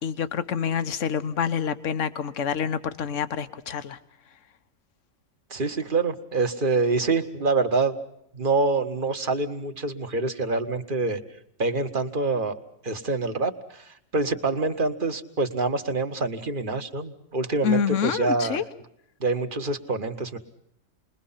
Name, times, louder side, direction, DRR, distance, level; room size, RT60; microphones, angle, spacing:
voice 1, 0.0-4.0 17.6-18.6, left 7 dB, 65° left, 12 dB, 1.4 m, -27 dB
voice 2, 5.5-8.0 8.3-11.2 11.6-12.6 12.8-18.6 19.2-20.4, right 3 dB, 40° right, 8 dB, 1.7 m, -26 dB
29.0 x 22.0 x 5.7 m, 0.77 s
omnidirectional pair, 1.4 m